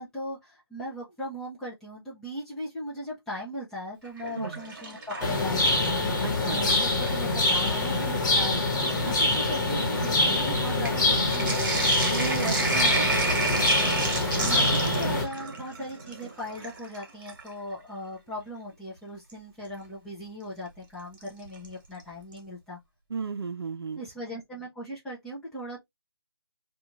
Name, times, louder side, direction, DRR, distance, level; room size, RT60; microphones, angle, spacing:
voice 1, 0.0-12.1 14.3-22.8 24.0-25.8, equal, 5° left, 0.5 m, -38 dB
Sink (filling or washing), 4.0-6.1 6.4-7.2 8.0-8.1 8.4-17.5 19.3-19.4 21.2-21.7 22.0-22.1 22.3-22.4, right 2 dB, 50° right, 1.2 m, -31 dB
sound 1, 5.2-15.2, left 2 dB, 45° left, 1.1 m, -25 dB
voice 2, 6.2-6.6 9.1-9.2 12.1-13.8 23.1-24.0, right 4 dB, 70° right, 0.6 m, -35 dB
2.4 x 2.4 x 2.9 m
figure-of-eight pair, 160°, 13 cm